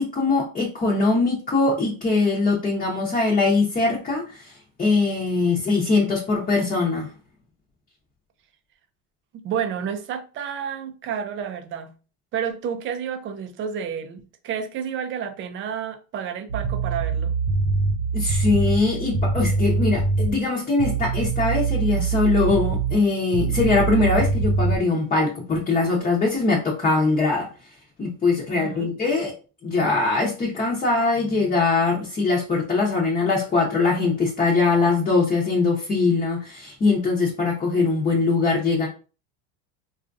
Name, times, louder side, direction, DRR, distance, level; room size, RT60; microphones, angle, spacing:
voice 1, 0.0-7.1 18.1-27.5 28.0-29.3 29.6-38.9, left 3 dB, 20° left, 0.7 m, -22 dB
voice 2, 9.3-11.9 12.3-17.4 28.5-28.9, right 8 dB, 30° right, 0.4 m, -30 dB
sound 1, 16.5-20.4 20.8-23.0 23.3-24.8, right 4 dB, 85° right, 0.7 m, -23 dB
3.6 x 2.4 x 2.5 m
supercardioid pair, 130°, 39 cm